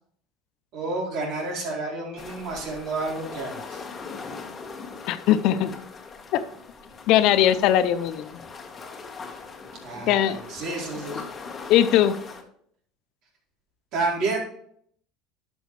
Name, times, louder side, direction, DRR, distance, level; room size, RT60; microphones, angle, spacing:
voice 1, 0.7-3.8 9.8-11.2 13.9-14.4, right 3 dB, 60° right, -3 dB, 4.3 m, -30 dB
sound 1, 2.2-12.4, left 4 dB, 30° left, 1.5 m, -40 dB
voice 2, 5.1-5.7 6.3-6.4 7.1-8.3 10.1-10.4 11.7-12.2, left 11 dB, 65° left, 13 dB, 0.6 m, -20 dB
11.5 x 6.2 x 3.3 m, 0.64 s
hypercardioid pair, 85°, 0 cm